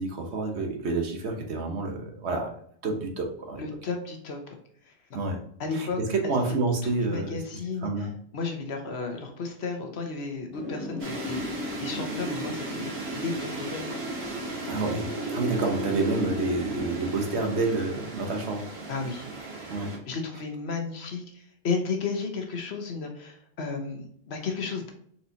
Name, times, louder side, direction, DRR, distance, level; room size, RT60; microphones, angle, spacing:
voice 1, 0.0-2.5 2.8-3.6 5.1-5.4 5.7-7.4 7.8-8.1 14.7-18.6 19.7-19.9, right 3 dB, 90° right, 2 dB, 1.3 m, -28 dB
voice 2, 3.6-4.4 5.6-6.0 6.2-6.3 7.0-8.1 8.3-11.5 11.8-14.0 18.9-19.2 20.1-24.9, left 4 dB, 75° left, 3 dB, 1.2 m, -33 dB
Wind, 10.5-19.2, equal, 55° left, 1.5 m, -36 dB
sound 1, 11.0-20.0, right 3 dB, 70° right, 1.4 m, -39 dB
4.3 x 4.2 x 2.7 m, 0.64 s
omnidirectional pair, 1.1 m